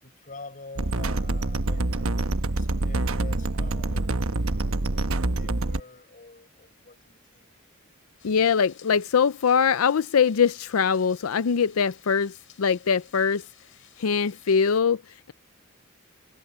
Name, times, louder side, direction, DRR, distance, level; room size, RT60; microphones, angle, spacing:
voice 1, 0.0-7.5, left 3 dB, 40° left, 5.3 m, -47 dB
sound 1, 0.8-5.8, right 2 dB, 75° right, 1.1 m, -26 dB
voice 2, 8.2-13.5 14.0-15.3, left 6 dB, 85° left, 0.5 m, -22 dB
sound 2, 8.2-14.8, left 11 dB, 65° left, 7.7 m, -55 dB
head